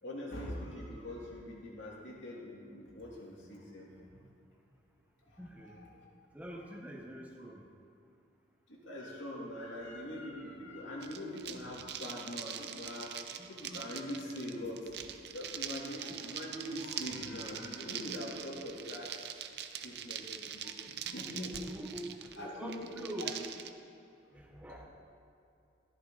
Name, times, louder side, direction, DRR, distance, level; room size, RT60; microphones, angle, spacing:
voice 1, 0.0-4.2 5.3-6.1 6.5-6.6 8.7-13.2 13.5-15.1 15.3-19.4 19.8-21.7 22.3-22.9 23.2-23.3 24.5-24.9, left 1 dB, 75° left, -3 dB, 3.0 m, -43 dB
voice 2, 5.4-5.8 6.3-7.7 13.4-13.5 13.7-13.8 21.6-23.4 24.3-24.9, right 1 dB, 5° right, 1 dB, 1.0 m, -45 dB
sound 1, 11.0-23.7, right 9 dB, 55° right, 0.7 m, -43 dB
15.0 x 14.0 x 4.0 m, 2.7 s
head